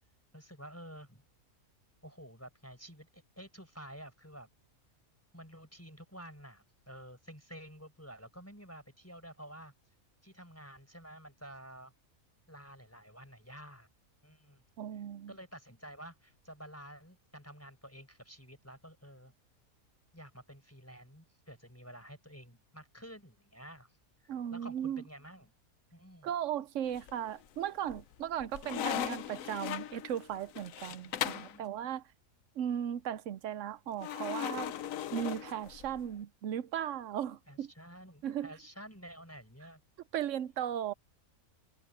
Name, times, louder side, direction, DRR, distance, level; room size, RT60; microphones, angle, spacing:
voice 1, 0.3-1.2 2.0-4.5 5.3-9.7 10.2-11.9 12.5-13.9 14.2-14.6 15.3-19.3 20.1-24.0 24.2-25.5 25.9-26.3 30.9-31.7 37.5-39.8, equal, 10° left, 5.0 m, -51 dB
voice 2, 14.8-15.3 24.3-25.0 26.2-32.0 32.6-34.7 35.1-37.7 38.2-38.5 40.1-40.9, right 10 dB, 65° right, 0.9 m, -36 dB
sound 1, 26.9-27.5 27.9-31.6 34.0-36.1, left 10 dB, 70° left, 1.1 m, -38 dB
omnidirectional pair, 1.5 m